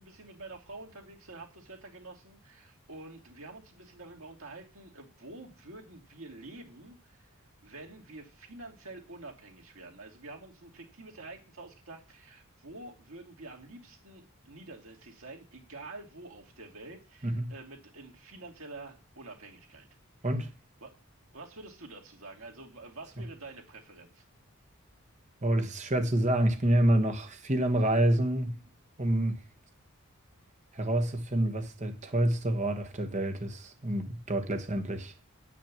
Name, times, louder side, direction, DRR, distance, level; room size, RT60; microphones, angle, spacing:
voice 1, 0.0-7.3 7.6-19.9 20.8-21.0 21.3-24.2, right 2 dB, 70° right, 2.6 m, -48 dB
voice 2, 17.2-17.5 20.2-20.5 25.4-28.6 29.0-29.4 30.7-35.1, right 1 dB, 35° right, 1.4 m, -28 dB
8.9 x 6.0 x 7.5 m
head